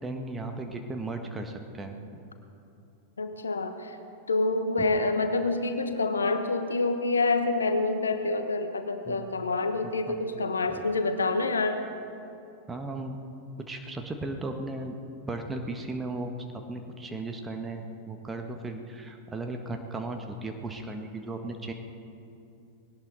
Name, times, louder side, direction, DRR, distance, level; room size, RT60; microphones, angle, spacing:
voice 1, 0.0-2.0 4.8-4.9 9.0-9.3 10.1-10.2 10.7-10.9 12.7-13.2 13.6-15.0 15.3-21.7, right 2 dB, 15° right, 4 dB, 1.5 m, -36 dB
voice 2, 3.2-4.0 4.3-11.8, left 3 dB, 75° left, 8 dB, 1.1 m, -27 dB
20.0 x 18.0 x 4.0 m, 2.7 s
figure-of-eight pair, 90°, 0 cm